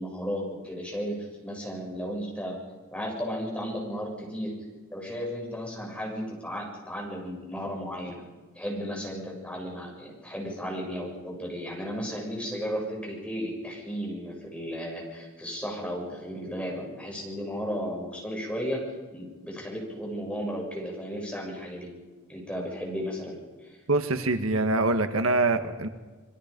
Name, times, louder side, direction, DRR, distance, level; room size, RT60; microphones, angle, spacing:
voice 1, 0.0-2.6 2.9-4.5 4.9-8.2 8.6-18.8 19.1-21.9 22.3-23.4, equal, 5° left, -2 dB, 7.0 m, -34 dB
voice 2, 23.9-25.9, right 2 dB, 80° right, 9 dB, 1.5 m, -24 dB
27.0 x 22.5 x 5.3 m, 1.3 s
head